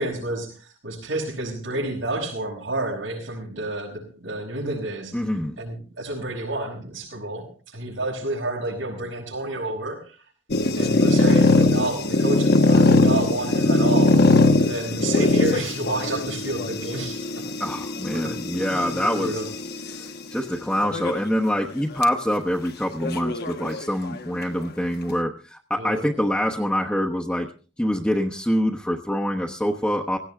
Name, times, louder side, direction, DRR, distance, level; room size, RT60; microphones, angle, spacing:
voice 1, 0.0-5.2 5.6-10.2 10.8-14.2 14.6-17.5 18.1-19.5 25.8-26.1, right 2 dB, 90° right, -5 dB, 5.4 m, -30 dB
voice 2, 5.1-5.6 17.6-19.4 19.9-27.5 27.8-30.2, equal, 5° left, -1 dB, 1.1 m, -25 dB
sound 1, 10.5-20.0 20.7-21.3 21.6-21.7 22.0-22.1 23.0-24.2, left 2 dB, 55° left, 1.2 m, -21 dB
18.5 x 17.0 x 3.5 m, 0.38 s
head